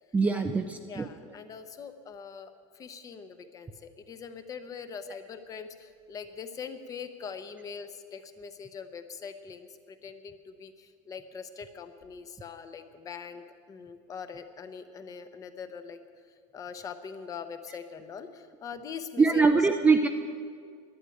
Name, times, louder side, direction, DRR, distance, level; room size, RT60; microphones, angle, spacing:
voice 1, 0.1-1.1 19.2-20.1, right 4 dB, 10° right, 5 dB, 0.4 m, -23 dB
voice 2, 0.8-16.0 16.5-19.7, left 6 dB, 20° left, 10 dB, 0.8 m, -42 dB
11.5 x 10.0 x 9.8 m, 2.1 s
supercardioid pair, 165°, 15 cm